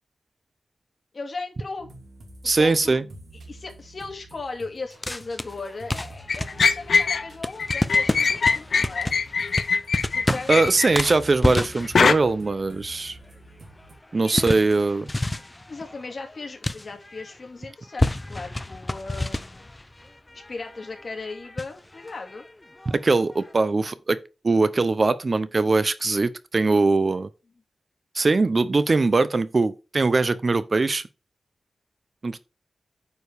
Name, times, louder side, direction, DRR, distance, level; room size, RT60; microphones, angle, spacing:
voice 1, 1.1-1.9 2.4-3.0 3.5-9.1 10.1-10.7 14.1-14.6 15.7-19.7 20.3-22.4, left 3 dB, 45° left, 2.4 m, -37 dB
sound 1, 1.8-13.9, right 2 dB, 80° right, 3.0 m, -47 dB
voice 2, 2.4-3.0 10.5-13.2 14.1-15.1 22.9-24.2 24.4-27.3 28.1-31.0 32.2-32.4, right 3 dB, 40° right, 0.7 m, -21 dB
sound 2, 5.0-17.5 17.8-23.5, left 1 dB, 15° left, 0.6 m, -31 dB
sound 3, 6.3-7.3 7.6-11.0 12.0-12.1, left 5 dB, 75° left, 0.6 m, -21 dB
9.4 x 5.0 x 4.8 m
wide cardioid pair, 125°, 0 cm